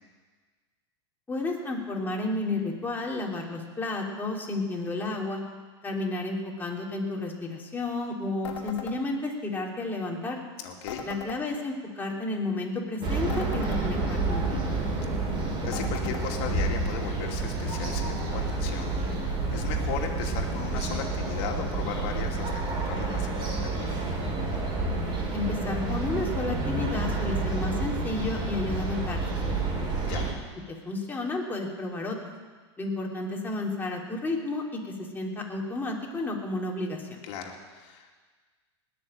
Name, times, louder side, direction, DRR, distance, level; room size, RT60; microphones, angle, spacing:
voice 1, 1.3-5.4 5.8-10.4 11.0-14.7 25.3-29.7 30.8-32.3 32.8-37.2, left 2 dB, 15° left, -2 dB, 3.2 m, -32 dB
sound 1, 8.4-9.0 10.9-11.4 13.3-13.8 15.7-16.3, left 6 dB, 90° left, 2.4 m, -39 dB
voice 2, 10.6-11.0 15.6-24.0 30.0-30.3 37.2-38.1, left 7 dB, 60° left, 1 dB, 2.6 m, -37 dB
sound 2, 13.0-30.3, right 3 dB, 35° right, 5.2 m, -29 dB
19.5 x 6.8 x 9.0 m, 1.4 s
hypercardioid pair, 110°, 15 cm